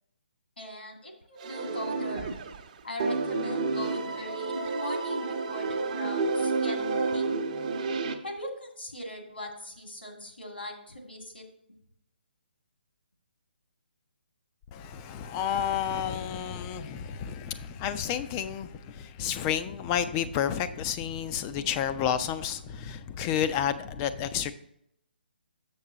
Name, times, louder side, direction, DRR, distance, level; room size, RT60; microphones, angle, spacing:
voice 1, 0.6-2.3 2.8-6.8 7.1-7.3 8.2-11.4, left 1 dB, 80° left, 2 dB, 2.1 m, -40 dB
sound 1, 1.4-2.7 3.0-8.1, right 3 dB, 40° right, 0.9 m, -30 dB
voice 2, 14.7-24.5, left 9 dB, 20° left, 11 dB, 0.5 m, -30 dB
7.2 x 6.9 x 3.9 m, 0.76 s
figure-of-eight pair, 140°, 6 cm